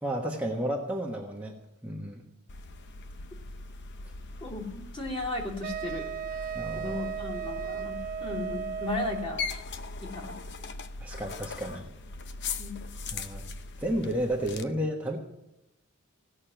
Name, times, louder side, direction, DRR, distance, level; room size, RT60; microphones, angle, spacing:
voice 1, 0.0-1.6 1.8-2.2 6.5-7.1 11.0-11.9 13.1-13.4 13.8-15.2, right 1 dB, 5° right, -3 dB, 1.3 m, -32 dB
sound 1, 2.5-14.6, left 3 dB, 55° left, 0.8 m, -40 dB
voice 2, 4.4-9.4 10.0-10.7 12.6-12.8, left 2 dB, 25° left, -2 dB, 3.1 m, -36 dB
Wind instrument woodwind instrument, 5.6-9.5, right 7 dB, 45° right, 0.6 m, -36 dB
17.0 x 6.5 x 8.9 m, 0.91 s
head